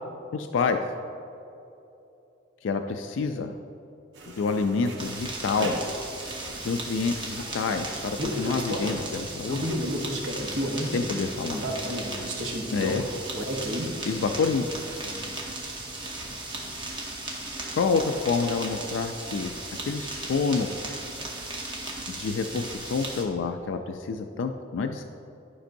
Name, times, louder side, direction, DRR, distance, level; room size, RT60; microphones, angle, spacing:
voice 1, 0.3-0.8 2.6-3.5 4.3-5.8 6.6-9.6 10.8-11.6 12.7-13.0 14.0-14.7 17.7-19.5 19.9-20.7 22.1-25.0, left 4 dB, 80° left, 6 dB, 0.3 m, -28 dB
sound 1, 4.2-16.8, equal, 70° right, 0.9 m, -34 dB
sound 2, 5.0-23.2, right 2 dB, 25° right, 0.9 m, -36 dB
11.5 x 5.2 x 2.6 m, 2.9 s
head